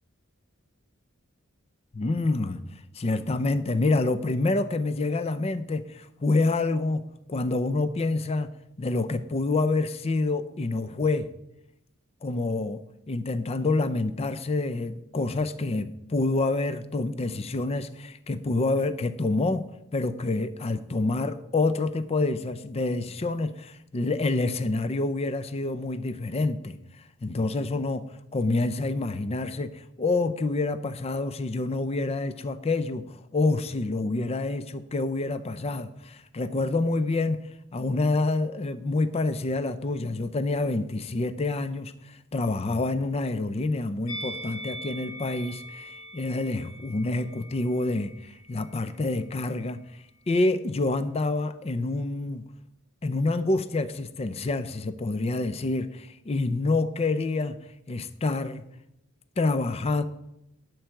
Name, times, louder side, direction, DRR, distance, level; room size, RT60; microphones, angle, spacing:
voice 1, 1.9-2.6 2.9-7.0 7.3-8.5 8.8-11.3 12.2-19.7 19.9-26.8 27.2-28.0 28.3-52.4 53.0-57.6 57.9-58.6 59.4-60.0, left 2 dB, 30° left, 0.5 m, -27 dB
Musical instrument, 44.1-49.3 49.6-49.8, equal, 75° left, 2.1 m, -42 dB
11.5 x 4.7 x 7.6 m
head